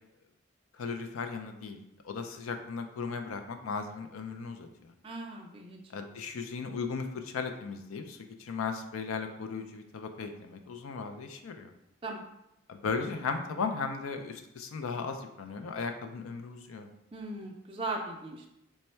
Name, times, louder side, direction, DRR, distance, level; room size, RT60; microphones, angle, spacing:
voice 1, 0.7-1.8 2.0-4.9 5.9-11.7 12.7-16.9, left 5 dB, 90° left, 6 dB, 0.4 m, -36 dB
voice 2, 5.0-5.8 12.0-12.2 17.1-18.5, right 2 dB, 25° right, 1 dB, 0.4 m, -38 dB
3.3 x 2.1 x 4.3 m, 0.85 s
head